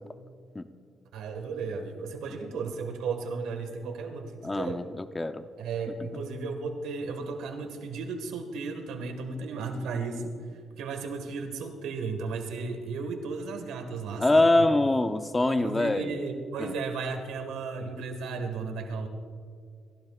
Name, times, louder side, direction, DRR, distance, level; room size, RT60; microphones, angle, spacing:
voice 1, 1.1-4.8 5.6-10.4 10.8-14.7 15.5-19.1, right 4 dB, 85° right, 5 dB, 1.7 m, -34 dB
voice 2, 4.4-5.4 14.2-16.2 16.6-16.7, left 2 dB, 20° left, 10 dB, 0.7 m, -24 dB
29.0 x 15.0 x 2.4 m, 2.1 s
cardioid pair, 90°, 0 cm